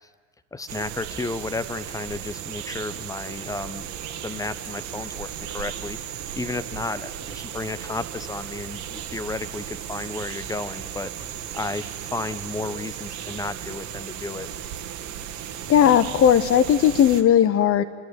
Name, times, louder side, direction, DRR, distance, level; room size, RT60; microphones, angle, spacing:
voice 1, 0.5-3.9 4.2-6.0 6.3-14.5, left 3 dB, 10° left, 14 dB, 1.0 m, -33 dB
sound 1, 0.7-17.2, right 9 dB, 45° right, 1.8 m, -35 dB
voice 2, 15.7-17.8, left 9 dB, 35° left, 13 dB, 1.5 m, -17 dB
29.5 x 11.5 x 9.5 m, 1.5 s
figure-of-eight pair, 75°, 41 cm